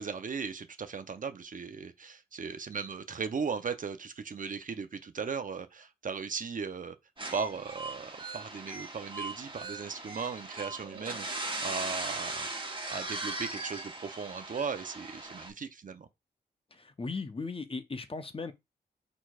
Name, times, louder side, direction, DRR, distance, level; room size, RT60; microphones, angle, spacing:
voice 1, 0.0-7.0 7.3-12.5 12.9-16.1, right 5 dB, 50° right, 0.7 m, -37 dB
sound 1, 7.2-15.5, right 2 dB, 25° right, 1.4 m, -39 dB
voice 2, 16.7-18.5, left 4 dB, 30° left, 0.8 m, -37 dB
4.4 x 4.0 x 2.4 m
supercardioid pair, 45°, 18 cm